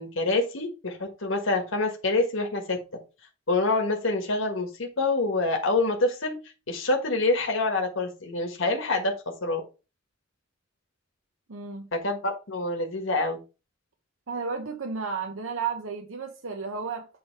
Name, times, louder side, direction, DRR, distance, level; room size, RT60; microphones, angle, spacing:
voice 1, 0.0-2.8 3.5-6.3 6.7-9.1 9.4-9.6 11.9-13.4, left 2 dB, 80° left, 1.4 m, -26 dB
voice 2, 11.5-11.9 14.3-17.1, right 5 dB, 85° right, 0.8 m, -33 dB
8.6 x 3.3 x 4.5 m
head